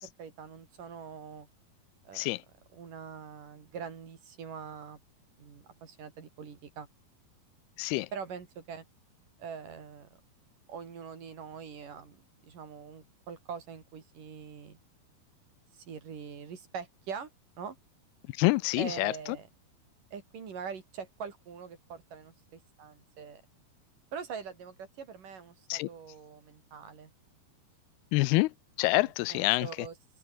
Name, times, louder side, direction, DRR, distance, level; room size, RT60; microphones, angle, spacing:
voice 1, 0.0-1.5 2.0-2.3 2.7-5.0 5.4-6.9 8.1-8.8 9.4-10.2 10.7-14.8 15.7-17.3 17.6-17.8 18.8-19.5 20.1-23.4 24.1-27.1 29.0-29.9, right 6 dB, 55° right, 4.8 m, -43 dB
voice 2, 7.8-8.1 18.4-19.1 25.7-25.9 28.1-28.5 28.8-29.9, left 21 dB, 85° left, 2.6 m, -27 dB
omnidirectional pair, 4.5 m